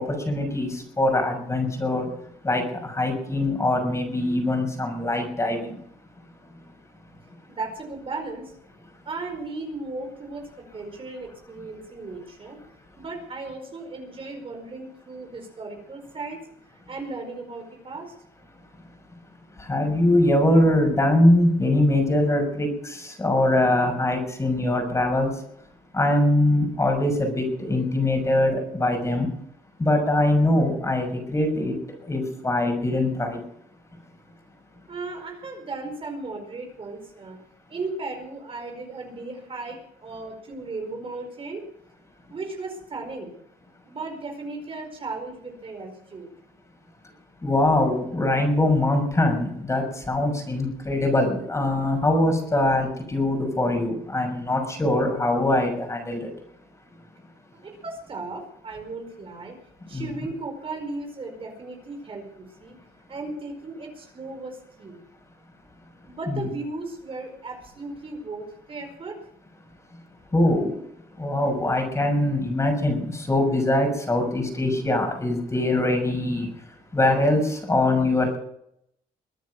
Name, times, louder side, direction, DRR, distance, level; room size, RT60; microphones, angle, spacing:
voice 1, 0.0-2.1 2.4-5.7 19.6-25.3 25.9-29.3 29.8-31.7 32.0-33.4 47.4-56.3 59.9-60.1 66.3-66.5 70.3-70.8 71.2-76.5 76.9-78.4, left 1 dB, 20° left, 3 dB, 6.3 m, -22 dB
voice 2, 7.5-8.5 9.0-12.6 13.0-16.4 16.9-18.1 34.9-37.4 37.7-41.6 42.3-43.3 43.8-46.3 57.5-59.6 59.9-62.7 63.1-65.0 66.0-69.2, right 3 dB, 35° right, 3 dB, 4.8 m, -36 dB
22.5 x 9.5 x 6.4 m, 0.72 s
cardioid pair, 105°, 16 cm